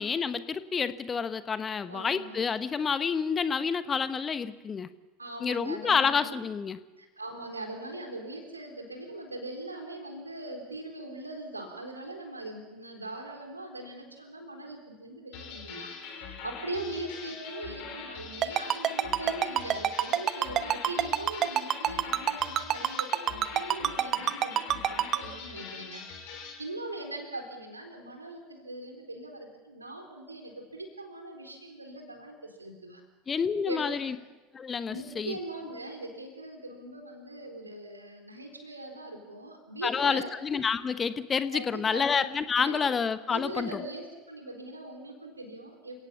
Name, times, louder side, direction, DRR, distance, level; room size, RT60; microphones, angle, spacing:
voice 1, 0.0-4.9 5.4-6.8 33.3-34.1 34.5-35.3 39.8-43.7, left 6 dB, 25° left, 13 dB, 1.1 m, -28 dB
voice 2, 1.9-2.4 5.2-6.3 7.0-33.0 33.6-34.1 34.9-40.3 41.5-42.9 43.3-46.1, right 2 dB, 85° right, 3 dB, 4.1 m, -41 dB
sound 1, 15.3-26.6, left 6 dB, 50° left, 5.2 m, -43 dB
Ringtone, 18.4-25.2, right 11 dB, 35° right, 1.1 m, -25 dB
29.0 x 17.0 x 7.3 m, 1.2 s
figure-of-eight pair, 75°, 0 cm